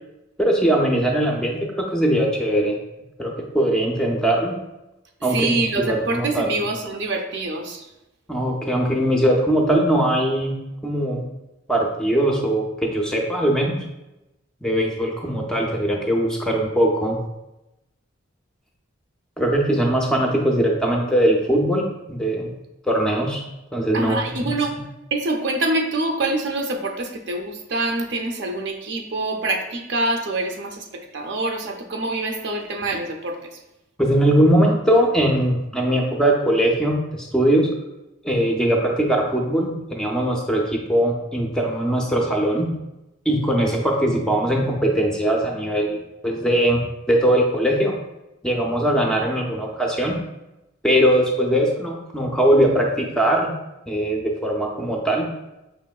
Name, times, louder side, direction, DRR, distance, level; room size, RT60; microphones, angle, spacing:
voice 1, 0.4-2.7 3.2-4.6 5.2-6.6 8.3-10.5 10.8-11.2 11.7-13.8 14.6-17.2 19.4-22.5 22.9-23.4 23.7-24.2 34.0-37.7 38.2-42.7 43.3-46.8 47.1-47.9 48.4-50.2 50.8-53.5 53.9-55.3, right 1 dB, 5° left, -1 dB, 0.4 m, -20 dB
voice 2, 5.3-7.9 23.9-24.7 25.1-33.4, right 2 dB, 60° right, 3 dB, 0.5 m, -25 dB
5.5 x 3.0 x 2.3 m, 0.95 s
head